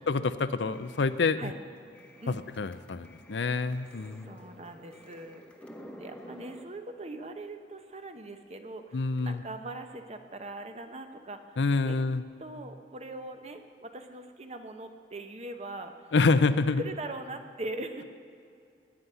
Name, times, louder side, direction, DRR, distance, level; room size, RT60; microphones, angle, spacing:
voice 1, 0.0-1.5 2.3-4.3 8.9-9.4 11.6-12.2 16.1-16.8, left 4 dB, 85° left, 13 dB, 0.6 m, -27 dB
sound 1, 0.7-6.6, equal, 5° left, 1.0 m, -51 dB
voice 2, 4.2-5.4 6.0-11.5 11.8-12.0 12.4-16.1 16.8-18.0, right 2 dB, 35° right, 7 dB, 0.9 m, -41 dB
19.5 x 9.6 x 5.6 m, 2.4 s
head